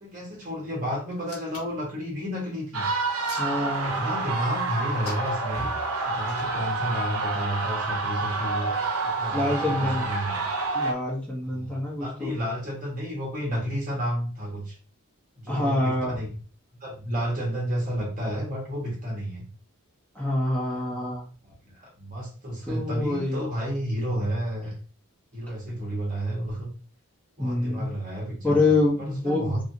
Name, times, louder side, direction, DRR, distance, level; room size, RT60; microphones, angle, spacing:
voice 1, 0.0-2.9 3.4-5.7 6.0-8.7 9.0-10.5 11.4-14.8 15.4-16.3 16.8-19.4 20.8-20.9 21.4-24.7 25.3-26.7 27.4-29.6, equal, 40° right, -3 dB, 1.2 m, -31 dB
Hands, 1.1-1.8 2.9-4.0 5.0-5.6 6.2-6.4, left 3 dB, 75° left, 1.0 m, -42 dB
sound 1, 2.7-10.9, right 3 dB, 80° right, 0.6 m, -28 dB
voice 2, 3.4-3.9 9.3-10.1 10.7-12.3 15.5-16.2 20.1-21.2 22.6-23.4 27.4-27.9 28.4-29.6, left 2 dB, 5° left, -6 dB, 0.7 m, -26 dB
2.7 x 2.7 x 2.7 m, 0.39 s
head